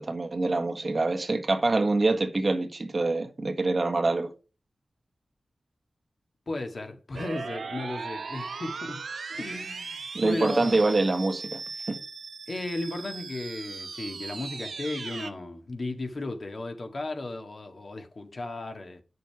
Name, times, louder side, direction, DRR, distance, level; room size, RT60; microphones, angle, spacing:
voice 1, 0.0-4.3 10.1-11.6 11.9-12.0, right 2 dB, 50° right, 1.6 m, -25 dB
voice 2, 6.5-9.0 9.3-10.7 12.5-19.0, left 2 dB, 60° left, 1.9 m, -35 dB
sound 1, 7.1-15.3, right 4 dB, 85° right, 0.9 m, -38 dB
9.1 x 6.7 x 4.7 m
wide cardioid pair, 60°, 0 cm